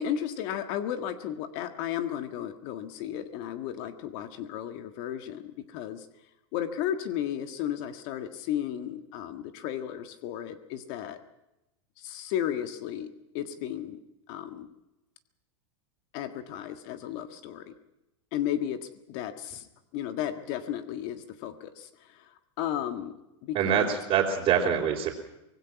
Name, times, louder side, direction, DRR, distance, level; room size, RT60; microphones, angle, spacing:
voice 1, 0.0-6.1 6.5-11.2 12.0-14.0 14.3-14.7 16.1-17.7 18.3-19.7 19.9-23.9, left 10 dB, 55° left, 8 dB, 1.7 m, -34 dB
voice 2, 23.5-25.1, right 8 dB, 35° right, -4 dB, 3.6 m, -25 dB
25.0 x 19.5 x 6.0 m, 0.93 s
supercardioid pair, 130°, 15 cm